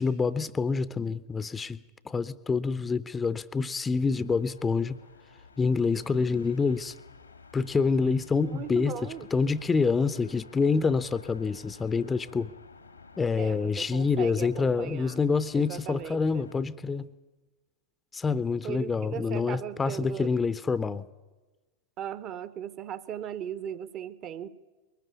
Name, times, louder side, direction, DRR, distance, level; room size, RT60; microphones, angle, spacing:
voice 1, 0.0-5.0 5.6-6.9 7.5-12.5 13.2-17.1 18.1-21.0, left 4 dB, 15° left, 16 dB, 0.6 m, -27 dB
sound 1, 3.9-16.6, left 4 dB, 80° left, 1.5 m, -53 dB
voice 2, 8.4-9.3 13.4-15.2 15.5-16.5 18.6-20.3 22.0-24.5, right 9 dB, 35° right, 15 dB, 0.8 m, -38 dB
21.0 x 13.0 x 9.9 m, 1.2 s
figure-of-eight pair, 90°, 0 cm